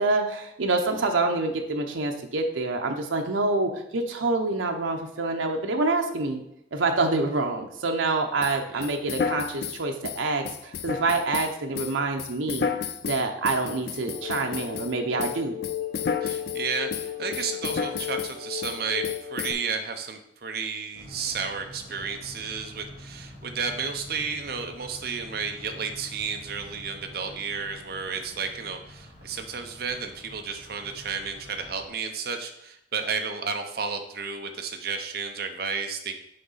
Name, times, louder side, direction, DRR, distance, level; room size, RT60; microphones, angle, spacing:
voice 1, 0.0-6.4 6.7-12.7 13.1-15.6, right 3 dB, 90° right, 4 dB, 0.7 m, -26 dB
sound 1, 8.4-14.9 15.2-16.6 16.9-18.3 18.6-18.8 19.0-19.5, left 6 dB, 55° left, 0.4 m, -32 dB
sound 2, 14.0-19.5, left 10 dB, 10° left, 1.4 m, -35 dB
voice 2, 16.2-36.1, right 5 dB, 50° right, 5 dB, 0.7 m, -32 dB
sound 3, 20.9-31.9, left 1 dB, 35° left, 2.1 m, -47 dB
6.6 x 4.7 x 4.1 m, 0.78 s
head